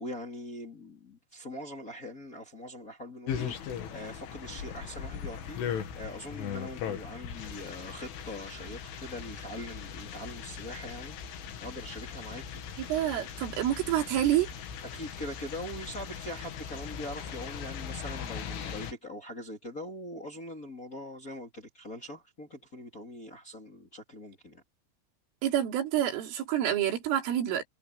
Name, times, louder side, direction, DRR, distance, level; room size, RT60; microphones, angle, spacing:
voice 1, 0.0-12.6 14.9-24.6, left 1 dB, 25° left, 2.3 m, -42 dB
sound 1, 3.3-18.9, left 7 dB, 80° left, 5.1 m, -39 dB
voice 2, 12.8-14.5 25.4-27.6, right 11 dB, 80° right, 5.5 m, -28 dB
omnidirectional pair, 5.7 m